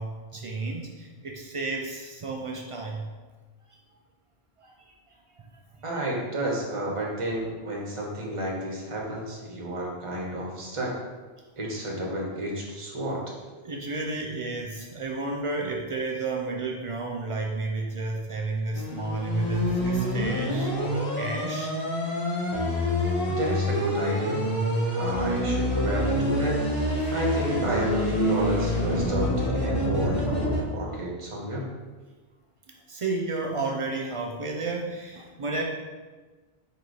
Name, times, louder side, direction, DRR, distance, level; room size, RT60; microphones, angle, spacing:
voice 1, 0.0-3.1 4.6-4.8 5.4-5.5 13.6-21.7 32.9-35.6, right 3 dB, 55° right, 0 dB, 0.3 m, -32 dB
voice 2, 5.8-10.9 11.6-13.2 23.3-24.4 24.9-26.6 27.1-31.7, right 1 dB, 30° right, -3 dB, 0.9 m, -31 dB
sound 1, 18.7-30.6, equal, 20° left, 1.6 m, -27 dB
3.9 x 2.8 x 4.6 m, 1.3 s
omnidirectional pair, 1.1 m